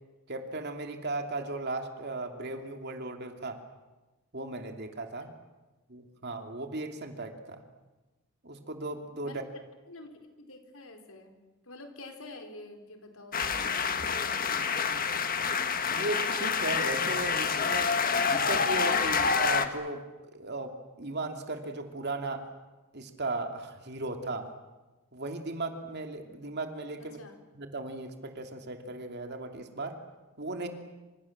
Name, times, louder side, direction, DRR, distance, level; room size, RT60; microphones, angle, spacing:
voice 1, 0.3-3.6 4.3-5.3 5.9-7.6 8.4-9.4 15.8-17.9 18.3-22.5 22.9-24.5 25.1-27.2 27.5-30.0 30.4-30.7, right 2 dB, 50° right, 5 dB, 2.8 m, -36 dB
voice 2, 9.9-11.4 11.6-15.0 27.0-27.4, left 2 dB, 75° left, 4 dB, 4.4 m, -48 dB
sound 1, 13.3-19.7, left 5 dB, 40° left, 1.6 m, -27 dB
27.0 x 27.0 x 7.4 m, 1.1 s
head